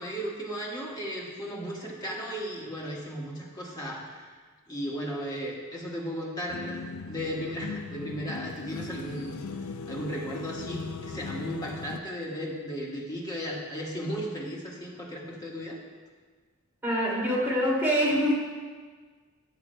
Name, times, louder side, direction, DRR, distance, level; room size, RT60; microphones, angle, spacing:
voice 1, 0.0-4.3 4.7-15.8, equal, 20° left, -4 dB, 1.5 m, -35 dB
sound 1, 6.5-12.0, left 4 dB, 90° left, 0.4 m, -39 dB
voice 2, 16.8-18.3, equal, 10° right, -7 dB, 2.5 m, -25 dB
15.5 x 7.1 x 2.2 m, 1.5 s
head